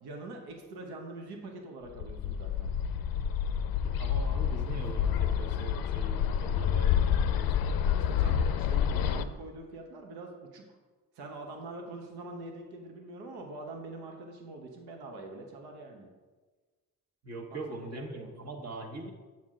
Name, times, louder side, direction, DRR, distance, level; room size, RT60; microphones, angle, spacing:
voice 1, 0.0-2.7 4.7-5.0 7.9-10.8 11.1-16.1 17.5-18.3, right 2 dB, 70° right, 2 dB, 1.2 m, -44 dB
Bird, 2.0-9.2, left 8 dB, 60° left, 0.5 m, -28 dB
voice 2, 3.8-7.6 17.2-19.1, right 2 dB, 40° right, 2 dB, 1.5 m, -42 dB
7.3 x 6.0 x 3.7 m, 1.3 s
supercardioid pair, 60°, 40 cm